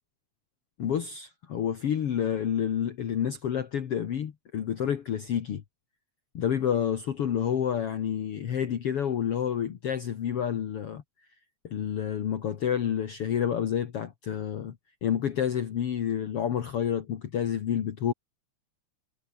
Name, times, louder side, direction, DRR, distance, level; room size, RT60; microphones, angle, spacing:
voice 1, 0.8-5.6 6.3-11.0 11.6-14.8 15.0-18.1, left 9 dB, 55° left, 2.3 m, -29 dB
omnidirectional pair, 3.5 m